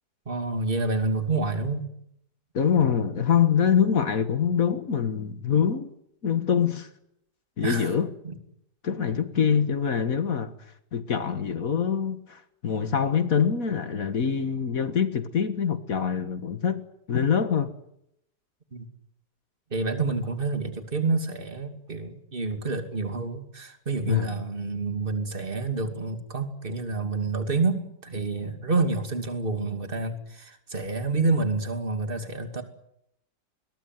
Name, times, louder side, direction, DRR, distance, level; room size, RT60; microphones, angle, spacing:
voice 1, 0.3-1.9 7.6-7.9 8.2-8.3 18.7-18.9 19.7-32.6, right 3 dB, 30° right, 2.8 m, -28 dB
voice 2, 2.5-5.9 6.2-6.9 7.6-8.1 8.8-10.5 10.9-16.8 17.1-17.7 24.1-24.4, left 7 dB, 55° left, 1.9 m, -24 dB
21.5 x 21.5 x 9.4 m
omnidirectional pair, 1.8 m